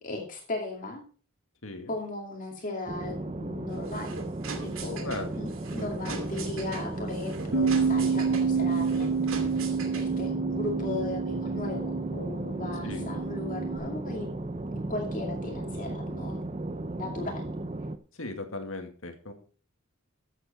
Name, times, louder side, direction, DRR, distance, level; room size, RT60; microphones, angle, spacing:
voice 1, 0.0-1.0 1.9-4.2 4.6-9.2 9.9-14.4 14.9-16.4 17.0-17.4, left 2 dB, 40° left, 1 dB, 2.4 m, -37 dB
voice 2, 1.6-1.9 5.0-5.4 12.8-13.1 18.1-19.3, left 2 dB, 65° left, 6 dB, 2.2 m, -37 dB
sound 1, 2.9-18.0, right 2 dB, 30° right, 0.7 m, -35 dB
sound 2, 3.7-10.3, right 4 dB, 65° right, 2.5 m, -41 dB
Bass guitar, 7.5-13.8, right 5 dB, 90° right, 1.6 m, -29 dB
14.0 x 8.1 x 4.3 m, 0.39 s
head